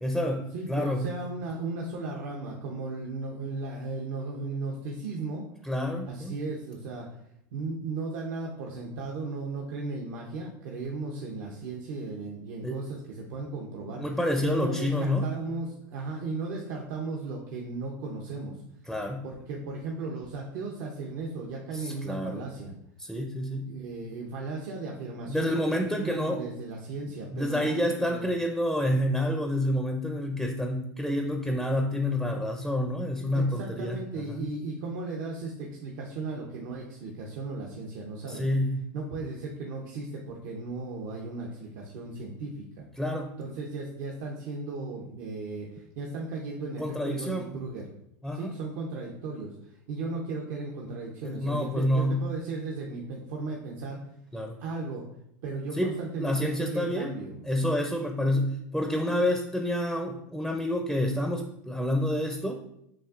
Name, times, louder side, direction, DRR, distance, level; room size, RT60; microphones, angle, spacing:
voice 1, 0.0-1.1 5.6-6.3 12.6-12.8 14.0-15.3 18.9-19.2 21.7-22.4 23.0-23.7 25.3-26.4 27.3-34.0 38.3-38.9 43.0-43.3 46.8-47.4 48.2-48.5 51.2-52.2 54.3-54.6 55.8-55.9 56.2-57.1 57.5-62.5, left 1 dB, ahead, 2 dB, 0.5 m, -28 dB
voice 2, 0.5-5.4 6.0-7.1 7.5-14.0 14.4-18.6 19.2-22.7 23.6-28.3 33.3-38.5 38.9-42.9 43.4-47.9 48.3-54.0 54.6-55.1 55.4-57.4, right 3 dB, 65° right, 0 dB, 0.8 m, -36 dB
7.3 x 2.6 x 2.5 m, 0.76 s
hypercardioid pair, 110°, 10 cm